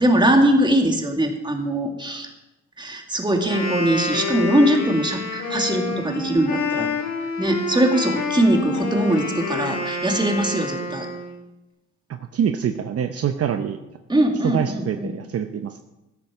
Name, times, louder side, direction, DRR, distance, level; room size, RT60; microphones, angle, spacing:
voice 1, 0.0-2.3 2.8-6.9 7.2-11.1 14.1-15.1, right 1 dB, 15° right, 3 dB, 2.3 m, -21 dB
Wind instrument woodwind instrument, 3.4-11.4, left 3 dB, 80° left, 4.0 m, -28 dB
voice 2, 12.1-13.8 14.4-15.8, right 8 dB, 50° right, 8 dB, 0.8 m, -25 dB
13.5 x 10.5 x 5.0 m, 0.98 s
cardioid pair, 90°, 30 cm